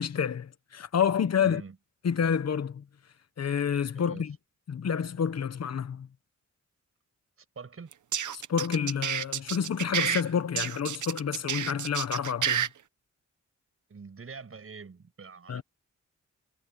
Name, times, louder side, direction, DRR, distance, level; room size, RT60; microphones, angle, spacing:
voice 1, 0.0-1.6 2.0-2.8 3.4-4.4 4.7-6.1 8.3-12.7 15.5-15.6, left 7 dB, 60° left, 1.0 m, -29 dB
voice 2, 1.4-1.8 3.9-4.3 7.4-7.9 13.9-15.6, right 5 dB, 50° right, 6.7 m, -45 dB
sound 1, 7.9-10.2 10.5-12.7, right 9 dB, 80° right, 0.9 m, -29 dB
wide cardioid pair, 140°, 30 cm